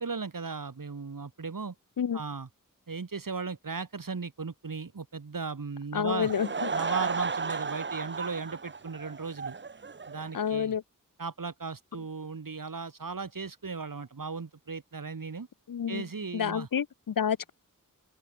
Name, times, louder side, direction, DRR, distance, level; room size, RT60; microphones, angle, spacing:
voice 1, 0.0-1.7 2.1-2.5 2.9-6.3 6.7-9.6 10.1-10.7 11.2-15.5 15.9-16.7, right 4 dB, 75° right, 4.6 m, -37 dB
voice 2, 5.9-6.7 10.3-10.8 15.7-16.0 16.3-17.5, left 8 dB, 80° left, 0.8 m, -29 dB
Laughter / Crowd, 6.1-10.6, right 4 dB, 35° right, 0.7 m, -34 dB
open air
wide cardioid pair, 85°, 33 cm